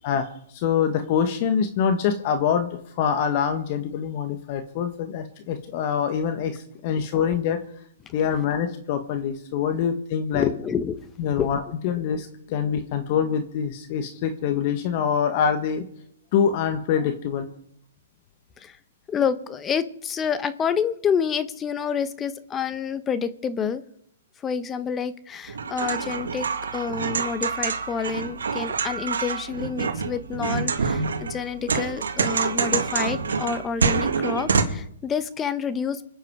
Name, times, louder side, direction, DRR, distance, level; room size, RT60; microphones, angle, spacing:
voice 1, 0.0-2.7 3.0-7.6 8.1-10.5 11.2-15.8 16.3-17.5, left 7 dB, 45° left, 7 dB, 1.5 m, -25 dB
voice 2, 10.3-11.0 11.4-11.5 18.6-18.8 19.1-23.8 24.4-36.1, left 7 dB, 20° left, 13 dB, 0.9 m, -28 dB
sound 1, 25.5-34.6, right 5 dB, 80° right, 2.0 m, -26 dB
26.0 x 9.0 x 4.8 m, 0.67 s
hypercardioid pair, 135°, 0 cm